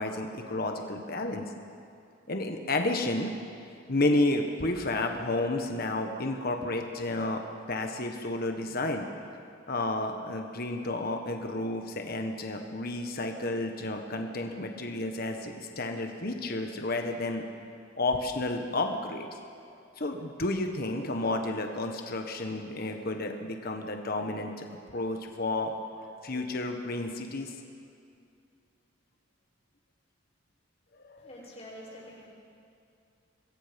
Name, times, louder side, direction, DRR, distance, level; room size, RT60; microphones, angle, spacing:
voice 1, 0.0-1.4 2.3-3.3 3.9-9.1 9.7-17.4 17.9-19.3 20.0-25.7 26.0-27.5 31.0-31.3, left 2 dB, 50° left, 4 dB, 1.5 m, -31 dB
voice 2, 31.2-32.3, equal, 35° left, -4 dB, 6.1 m, -46 dB
27.0 x 21.0 x 5.4 m, 2.5 s
head